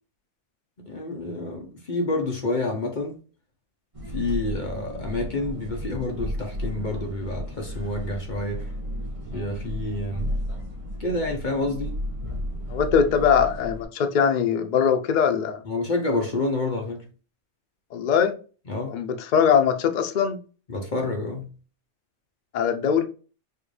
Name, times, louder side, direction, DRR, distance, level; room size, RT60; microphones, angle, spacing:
voice 1, 0.8-3.2 4.1-8.7 9.3-10.3 11.0-11.9 15.7-17.1 18.7-19.0 20.7-21.5, left 2 dB, 40° left, 0.7 m, -28 dB
sound 1, 3.9-13.8, equal, 30° right, 0.8 m, -33 dB
voice 2, 12.7-15.6 17.9-18.4 18.9-20.4 22.5-23.0, left 7 dB, 80° left, 0.4 m, -21 dB
4.4 x 2.6 x 3.1 m
omnidirectional pair, 1.5 m